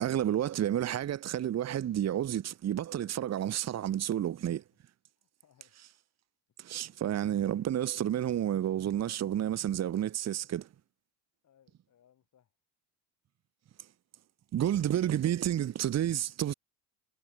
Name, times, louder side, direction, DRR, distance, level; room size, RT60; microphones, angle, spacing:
voice 1, 0.0-4.6 6.6-10.7 14.5-16.5, right 11 dB, 35° right, 1.3 m, -30 dB
voice 2, 5.2-5.7 7.3-7.5 11.4-12.5, left 9 dB, 40° left, 5.5 m, -67 dB
supercardioid pair, 105°, 44 cm